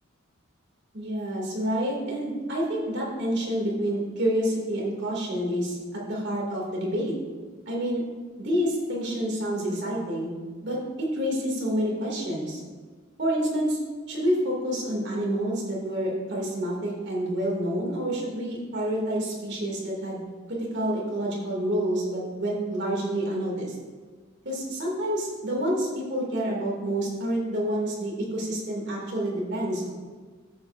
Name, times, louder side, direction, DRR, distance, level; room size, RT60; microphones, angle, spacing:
voice 1, 0.9-7.1 7.7-8.0 8.4-10.3 10.6-12.6 13.2-13.8 14.1-20.2 20.5-23.8 24.4-29.9, equal, 60° right, -3 dB, 2.5 m, -28 dB
13.5 x 7.5 x 2.6 m, 1.4 s
head